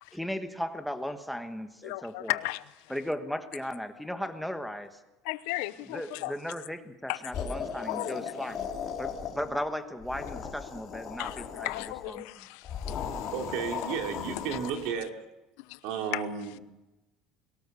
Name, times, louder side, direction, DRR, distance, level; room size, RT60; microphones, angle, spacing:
voice 1, 0.1-2.4 2.9-5.0 5.9-8.7 9.0-11.7 12.1-12.5, equal, ahead, 1.3 m, -36 dB
voice 2, 1.8-2.9 5.2-6.3 7.1-7.3 7.9-8.3 11.2-13.5 15.7-15.8 16.1-16.2, left 20 dB, 85° left, 0.9 m, -36 dB
sound 1, 7.3-9.6 9.9-12.1 12.6-14.9, left 7 dB, 35° left, 3.4 m, -37 dB
voice 3, 13.3-15.2 15.8-16.6, right 6 dB, 75° right, 3.1 m, -33 dB
22.0 x 19.0 x 6.9 m
cardioid pair, 160°, 0 cm